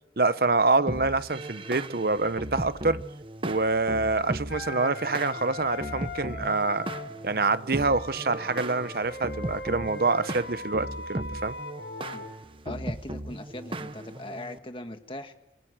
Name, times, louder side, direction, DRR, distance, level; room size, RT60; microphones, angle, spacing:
voice 1, 0.2-3.0 3.4-6.9 7.2-11.5, right 3 dB, 55° right, 0.8 m, -26 dB
sound 1, 0.9-14.6, right 1 dB, 30° right, 1.1 m, -37 dB
Wind instrument woodwind instrument, 4.5-7.1 7.7-12.3, left 2 dB, 85° left, 6.3 m, -39 dB
voice 2, 12.6-15.3, left 1 dB, 30° left, 1.5 m, -40 dB
28.0 x 20.0 x 6.3 m
head